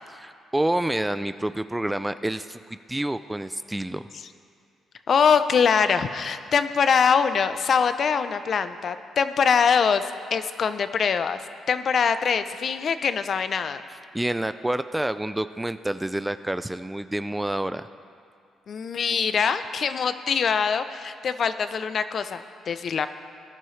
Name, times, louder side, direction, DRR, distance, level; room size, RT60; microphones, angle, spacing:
voice 1, 0.1-4.1 14.1-17.9, right 1 dB, 10° right, 12 dB, 0.3 m, -28 dB
voice 2, 5.1-11.4 11.7-13.8 18.7-23.1, left 6 dB, 55° left, 11 dB, 0.5 m, -23 dB
18.0 x 11.0 x 3.2 m, 2.3 s
cardioid pair, 90°, 0 cm